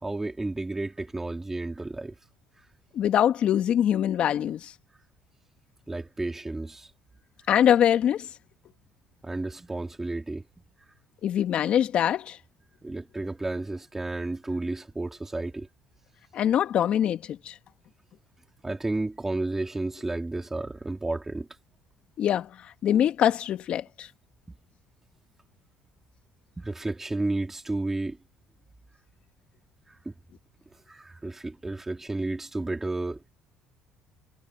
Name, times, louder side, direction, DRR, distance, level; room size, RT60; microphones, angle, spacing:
voice 1, 0.0-2.1 5.9-6.9 9.2-10.4 12.8-15.7 18.6-21.5 26.6-28.2 30.0-30.1 30.9-33.3, right 2 dB, 15° right, 3.0 m, -32 dB
voice 2, 2.9-4.7 7.5-8.3 11.2-12.4 16.3-17.5 22.2-22.5 22.8-24.1, left 10 dB, 60° left, 1.9 m, -23 dB
supercardioid pair, 80°, 2 cm